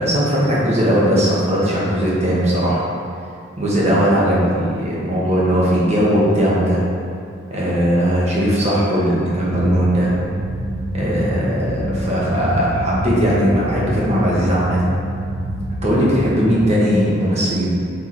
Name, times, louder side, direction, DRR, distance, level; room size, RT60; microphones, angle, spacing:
voice 1, 0.0-2.8 3.6-6.8 7.5-10.2 10.9-14.9 15.8-17.6, equal, 35° right, -6 dB, 1.5 m, -18 dB
sound 1, 9.5-16.7, right 1 dB, 70° right, 0.8 m, -27 dB
5.2 x 4.8 x 4.3 m, 2.5 s
head